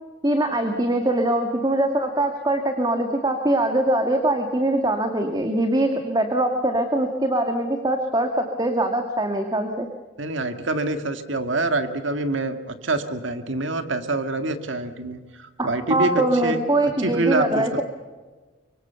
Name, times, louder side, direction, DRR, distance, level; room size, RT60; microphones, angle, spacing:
voice 1, 0.2-9.9 15.6-17.8, right 1 dB, 20° right, 5 dB, 1.9 m, -22 dB
voice 2, 10.2-17.8, right 2 dB, 70° right, 8 dB, 2.0 m, -26 dB
24.5 x 24.5 x 7.0 m, 1.3 s
head